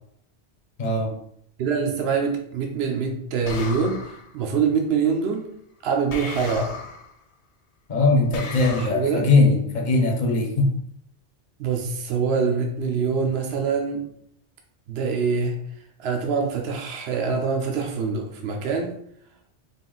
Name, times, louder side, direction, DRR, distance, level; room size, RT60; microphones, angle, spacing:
voice 1, 0.8-1.1 7.9-10.7, left 3 dB, 45° left, 1 dB, 0.8 m, -20 dB
voice 2, 1.6-5.5 5.8-6.7 8.8-9.3 11.6-14.0 14.9-15.5 16.0-19.0, right 5 dB, 70° right, 2 dB, 0.8 m, -24 dB
sound 1, 3.4-4.3 6.1-7.1 8.3-8.9, left 4 dB, 80° left, 0.9 m, -35 dB
3.5 x 2.5 x 3.8 m, 0.70 s
omnidirectional pair, 1.1 m